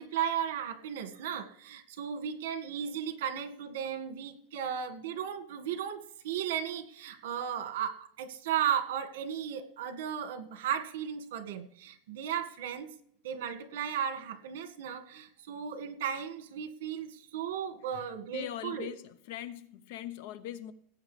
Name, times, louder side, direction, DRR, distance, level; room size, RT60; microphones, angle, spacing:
voice 1, 0.0-6.0 6.2-12.9 13.2-18.9, right 9 dB, 80° right, 1.8 m, -35 dB
voice 2, 18.3-20.7, left 12 dB, 55° left, 0.9 m, -41 dB
19.0 x 8.7 x 3.4 m
supercardioid pair, 175°, 0 cm